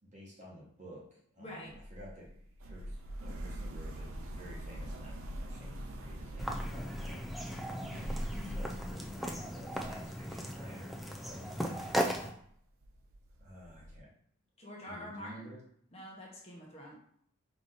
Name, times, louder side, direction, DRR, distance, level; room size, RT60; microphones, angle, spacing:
voice 1, 0.0-2.3 2.6-7.2 8.3-11.8 13.4-14.1 14.9-15.6, equal, 35° right, -4 dB, 1.4 m, -52 dB
voice 2, 1.4-1.7 8.3-8.8 14.6-15.5 15.9-16.9, equal, 30° left, -3 dB, 0.9 m, -46 dB
sound 1, 1.7-11.3 11.5-12.1 12.5-12.6 12.8-14.0, equal, 80° right, 0.6 m, -43 dB
sound 2, 6.4-12.3, equal, ahead, 0.3 m, -37 dB
4.9 x 2.7 x 3.9 m, 0.66 s
head